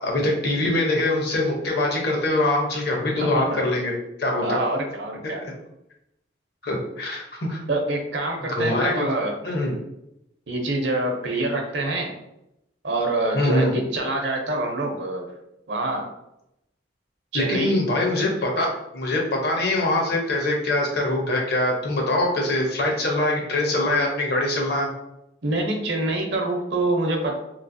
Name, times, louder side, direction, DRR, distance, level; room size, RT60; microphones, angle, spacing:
voice 1, 0.0-3.9 4.2-4.6 6.6-7.6 8.5-9.1 9.4-9.7 13.3-13.7 17.3-24.9, left 1 dB, 60° left, 0 dB, 0.8 m, -23 dB
voice 2, 3.2-3.6 4.4-5.4 7.7-9.4 10.5-12.1 12.8-15.3 15.7-16.1 17.3-17.8 25.4-27.4, right 2 dB, 70° right, 2 dB, 0.6 m, -26 dB
3.1 x 2.7 x 2.6 m, 0.84 s
head